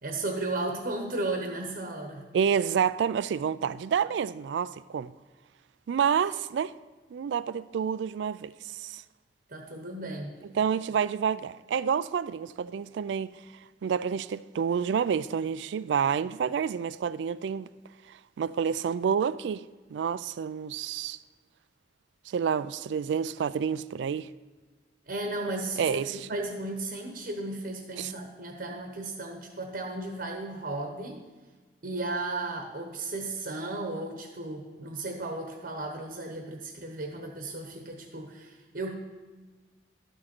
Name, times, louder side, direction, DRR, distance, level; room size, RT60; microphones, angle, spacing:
voice 1, 0.0-2.3 9.5-10.3 25.1-31.2 31.8-38.9, right 2 dB, 55° right, 1.0 m, -35 dB
voice 2, 2.3-5.1 5.9-6.7 7.1-9.0 10.5-13.3 13.8-17.7 18.1-19.6 19.9-21.2 22.3-24.3 25.8-26.2 28.0-28.1, right 7 dB, 80° right, 0.3 m, -29 dB
12.0 x 6.4 x 4.4 m
head